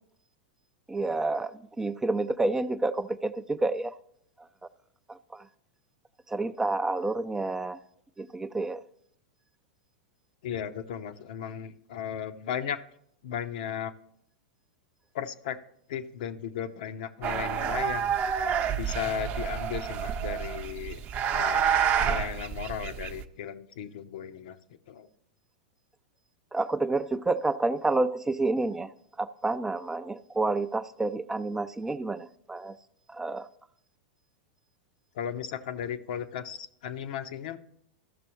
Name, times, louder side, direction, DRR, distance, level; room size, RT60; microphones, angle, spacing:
voice 1, 0.9-3.9 5.1-5.4 6.3-7.8 8.2-8.8 26.5-28.9 29.2-32.8 33.1-33.5, right 2 dB, 10° right, 0.3 m, -29 dB
voice 2, 10.4-12.8 13.2-13.9 15.1-15.6 15.9-18.1 18.7-21.0 21.3-21.7 22.0-24.6 24.9-25.1 35.1-37.6, left 9 dB, 65° left, 0.7 m, -35 dB
sound 1, 17.2-23.2, right 8 dB, 35° right, 0.7 m, -28 dB
14.0 x 6.1 x 3.0 m
hypercardioid pair, 110°, 5 cm